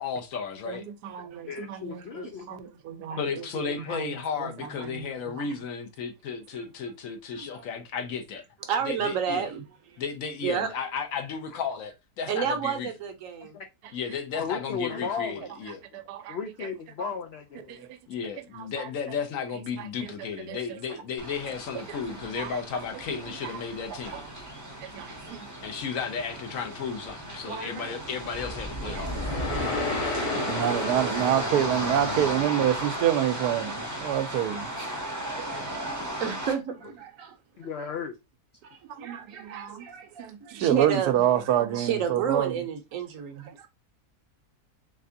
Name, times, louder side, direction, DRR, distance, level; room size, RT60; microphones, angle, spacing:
voice 1, 0.0-0.8 3.2-8.4 8.8-9.5 10.0-12.9 13.9-15.8 18.1-24.3 25.6-29.2, left 6 dB, 65° left, 1.0 m, -34 dB
voice 2, 0.7-4.5 4.8-5.5 15.9-16.4 17.0-17.1 17.7-18.0 18.5-18.9 19.8-20.1 20.5-20.8 21.7-22.6 23.1-23.5 23.9-24.2 24.8-25.5 27.5-27.9 28.8-29.2 30.1-34.7 35.3-35.9 38.9-39.9 40.2-42.5, right 11 dB, 85° right, 1.1 m, -29 dB
voice 3, 1.5-2.6 3.1-3.2 3.8-4.0 11.5-11.6 13.4-13.7 14.4-15.4 15.9-16.0 16.3-17.9 26.6-26.8 30.0-30.5 31.1-31.2 34.1-34.2 37.6-38.2, left 6 dB, 85° left, 0.5 m, -36 dB
voice 4, 7.3-7.6 8.6-10.0 10.4-10.7 12.3-13.6 22.4-22.5 25.2-25.3 27.8-28.0 29.1-29.8 34.1-34.2 35.3-37.9 38.7-41.3 41.7-43.7, right 7 dB, 65° right, 1.0 m, -32 dB
sound 1, 21.2-36.5, right 1 dB, 20° right, 0.5 m, -35 dB
sound 2, 28.3-32.6, left 2 dB, 40° left, 0.7 m, -32 dB
3.5 x 3.3 x 2.6 m
omnidirectional pair, 1.6 m